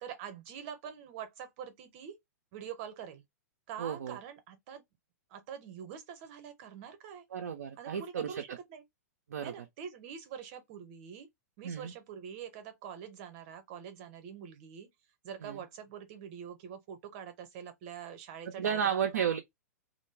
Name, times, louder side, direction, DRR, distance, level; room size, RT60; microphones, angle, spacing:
voice 1, 0.0-2.2 2.5-3.2 3.7-4.8 5.3-7.2 7.8-8.8 9.4-11.3 11.6-14.9 15.2-19.4, right 8 dB, 40° right, 0.8 m, -45 dB
voice 2, 3.8-4.2 7.3-8.6 9.3-9.5 11.6-11.9 15.4-15.6 18.4-19.4, right 8 dB, 65° right, 0.4 m, -33 dB
2.1 x 2.0 x 3.1 m
figure-of-eight pair, 105°, 9 cm